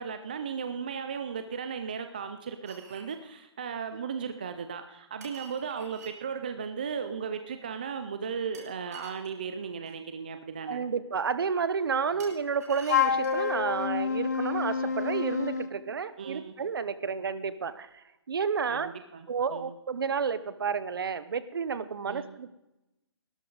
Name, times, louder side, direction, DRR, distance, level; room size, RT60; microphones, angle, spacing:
voice 1, 0.0-10.9 16.2-16.5 18.7-19.8 22.1-22.3, right 6 dB, 20° right, 8 dB, 0.4 m, -36 dB
sound 1, 2.7-3.2 5.2-6.2 8.5-10.0 12.2-13.5, right 4 dB, 35° right, 2.8 m, -49 dB
voice 2, 10.7-18.9 19.3-22.5, right 6 dB, 55° right, 14 dB, 0.8 m, -31 dB
Wind instrument woodwind instrument, 12.9-15.7, left 7 dB, 40° left, 0.7 m, -28 dB
17.0 x 12.5 x 3.9 m, 0.94 s
hypercardioid pair, 175°, 14 cm